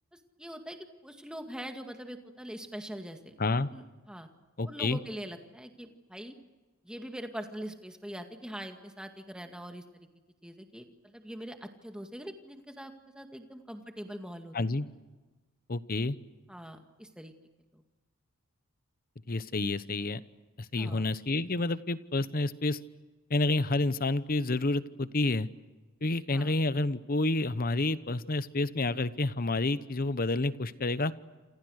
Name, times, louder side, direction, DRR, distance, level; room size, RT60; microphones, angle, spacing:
voice 1, 0.4-3.3 3.7-4.3 4.6-6.3 6.8-10.1 10.4-14.5 16.5-17.3 17.7-17.8 20.8-21.1 26.3-26.6, equal, 5° right, 5 dB, 2.1 m, -43 dB
voice 2, 4.6-5.0 14.5-14.9 15.7-16.2 19.3-20.2 20.7-22.8 23.3-25.5 26.0-31.1, left 2 dB, 40° left, 15 dB, 1.0 m, -29 dB
28.5 x 28.0 x 6.5 m, 1.2 s
head